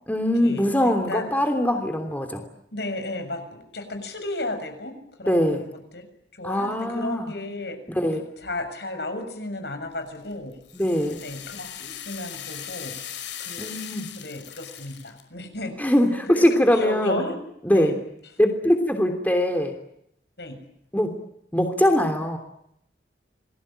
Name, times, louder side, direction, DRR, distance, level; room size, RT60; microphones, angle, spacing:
voice 1, 0.1-2.4 5.3-5.7 6.4-7.3 7.9-8.3 10.7-11.2 13.6-14.1 15.8-17.2 17.6-18.0 18.4-19.7 20.9-21.1 21.5-22.4, equal, 10° left, 5 dB, 3.1 m, -22 dB
voice 2, 2.7-5.7 5.9-6.0 6.4-7.8 8.4-10.5 11.2-13.0 13.5-13.7 14.1-15.8 16.3-17.4 17.7-17.9 20.4-20.6, left 2 dB, 70° left, 7 dB, 6.8 m, -33 dB
sound 1, 10.1-15.2, left 9 dB, 90° left, 5.3 m, -39 dB
28.5 x 21.0 x 9.0 m, 0.76 s
head